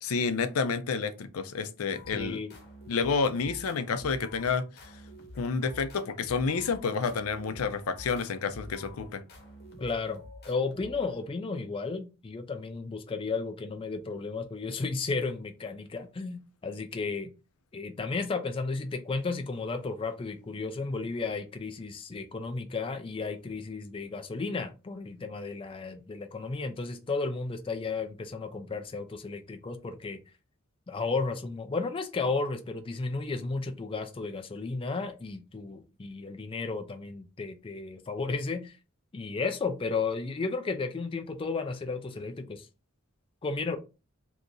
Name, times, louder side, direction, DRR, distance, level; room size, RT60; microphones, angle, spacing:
voice 1, 0.0-2.4 2.9-4.9 5.4-9.2, left 5 dB, 85° left, 0.5 m, -29 dB
sound 1, 1.9-11.4, left 1 dB, 50° left, 1.0 m, -48 dB
voice 2, 2.1-2.5 9.8-17.3 17.7-30.2 30.9-38.7 39.1-42.7 43.4-43.8, left 4 dB, 25° left, 0.4 m, -33 dB
2.8 x 2.5 x 3.7 m
head